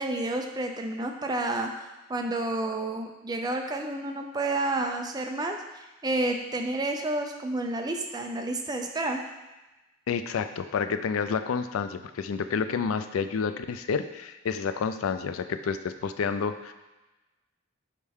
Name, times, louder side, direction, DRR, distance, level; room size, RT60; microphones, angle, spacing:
voice 1, 0.0-1.7 2.1-9.2, right 2 dB, 20° right, 3 dB, 0.5 m, -30 dB
voice 2, 10.1-16.7, left 6 dB, 90° left, 10 dB, 0.4 m, -29 dB
6.4 x 4.3 x 3.5 m, 1.1 s
head